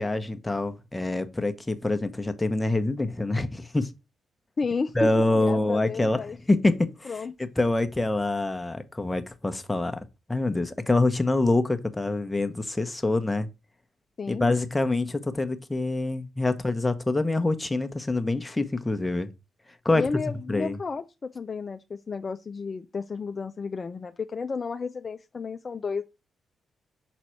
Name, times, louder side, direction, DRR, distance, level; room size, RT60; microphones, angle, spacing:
voice 1, 0.0-3.9 4.9-6.2 6.5-7.1 7.4-10.0 10.3-13.5 14.3-19.3 19.8-20.0 20.5-20.8, left 2 dB, 15° left, 1.1 m, -25 dB
voice 2, 4.6-6.4 7.1-7.3 14.2-14.5 19.9-26.0, left 4 dB, 45° left, 0.5 m, -32 dB
6.2 x 4.1 x 4.4 m
hypercardioid pair, 45°, 0 cm